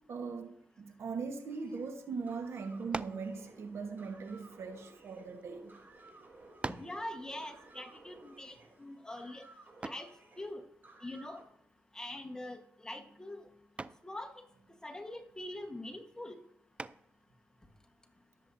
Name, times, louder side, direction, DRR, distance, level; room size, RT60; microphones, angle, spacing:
voice 1, 0.1-5.8, right 5 dB, 70° right, 1.3 m, -40 dB
sound 1, 1.5-11.4, right 2 dB, 50° right, 3.2 m, -57 dB
sound 2, 2.9-3.3 4.2-5.4 6.1-6.2 6.6-7.0 9.8-10.2 12.1-12.4 12.8-13.2 13.8-14.1 16.8-17.2, right 3 dB, 25° right, 0.4 m, -42 dB
voice 2, 6.7-9.5 9.8-10.1 10.4-10.6 11.0-11.4 11.9-13.4 14.0-14.5 14.8-16.4, left 1 dB, 15° left, 1.3 m, -43 dB
19.0 x 7.5 x 2.7 m
cardioid pair, 70°, 5 cm